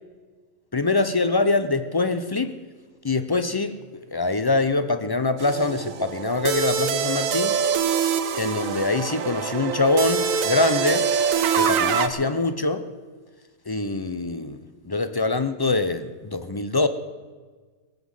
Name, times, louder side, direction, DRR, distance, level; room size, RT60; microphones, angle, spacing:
voice 1, 0.7-2.5 3.0-7.6 8.4-11.1 11.6-12.8 13.7-14.6 14.9-16.9, left 3 dB, 30° left, 11 dB, 0.4 m, -24 dB
sound 1, 5.4-12.1, right 7 dB, 75° right, 1.2 m, -24 dB
18.5 x 7.6 x 8.0 m, 1.4 s
omnidirectional pair, 1.4 m